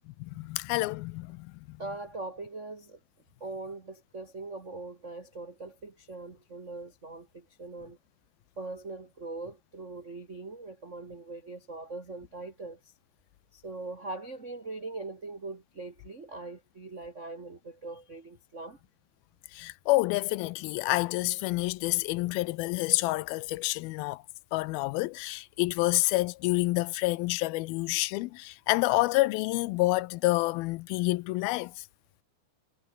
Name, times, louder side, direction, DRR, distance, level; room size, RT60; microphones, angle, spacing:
voice 1, 0.2-1.8 19.5-24.2 24.5-31.8, left 20 dB, 80° left, 2.4 m, -28 dB
voice 2, 1.8-3.0 3.4-8.0 8.6-12.8 13.5-18.8, right 3 dB, 55° right, 0.8 m, -41 dB
omnidirectional pair, 4.4 m